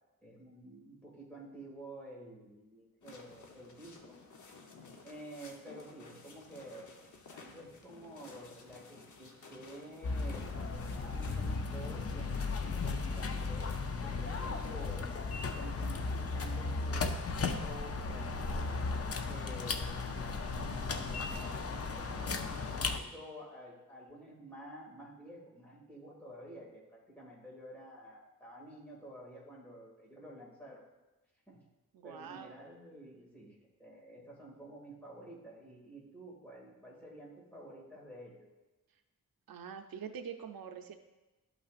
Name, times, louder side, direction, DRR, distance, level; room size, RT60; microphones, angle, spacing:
voice 1, 0.2-4.2 5.0-7.0 7.3-13.7 14.0-15.1 15.5-19.0 19.3-22.3 22.7-30.8 31.5-31.6 32.0-38.5, right 1 dB, 5° left, -5 dB, 2.2 m, -50 dB
sound 1, 3.0-14.9, left 4 dB, 60° left, 0.9 m, -54 dB
sound 2, 10.0-23.0, left 4 dB, 45° left, 0.5 m, -36 dB
voice 2, 31.9-32.5 39.5-41.0, right 7 dB, 85° right, 6 dB, 0.6 m, -45 dB
12.0 x 5.7 x 2.5 m, 1.1 s
wide cardioid pair, 150°, 34 cm